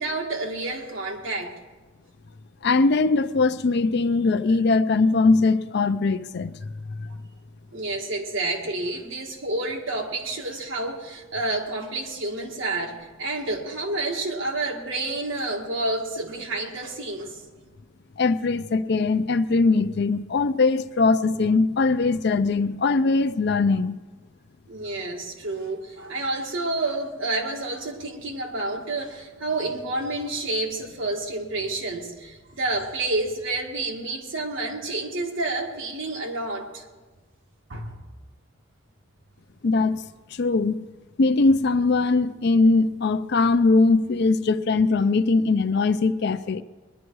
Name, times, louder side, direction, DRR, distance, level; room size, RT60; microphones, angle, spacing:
voice 1, 0.0-1.5 7.7-17.4 24.7-36.9 37.7-38.0, right 2 dB, 65° right, 1.9 m, -29 dB
voice 2, 2.6-6.5 7.0-7.1 18.2-24.0 39.6-40.0 40.3-40.9 41.2-46.6, left 3 dB, 55° left, 0.5 m, -21 dB
21.0 x 10.5 x 4.7 m
head